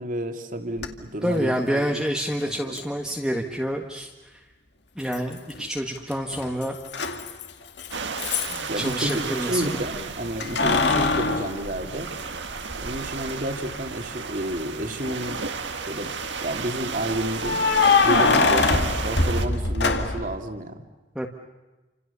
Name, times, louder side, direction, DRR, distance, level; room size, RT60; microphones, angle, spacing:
voice 1, 0.0-2.0 2.4-2.8 8.7-12.1 12.8-15.4 15.9-17.6 18.0-20.8, right 1 dB, 45° right, 5 dB, 2.8 m, -30 dB
Keys jangling, 0.8-0.9 2.8-2.9 5.1-5.7 6.0-9.1 10.4-12.5 13.0-13.1 14.9-15.4 17.4-20.4, left 3 dB, 65° left, 2.3 m, -23 dB
voice 2, 1.2-4.4 5.0-6.8 8.5-9.8 21.2-21.3, equal, 5° right, 1 dB, 1.7 m, -28 dB
sound 1, 7.9-19.5, right 5 dB, 70° right, 2.0 m, -33 dB
29.5 x 27.0 x 7.0 m, 1.2 s
head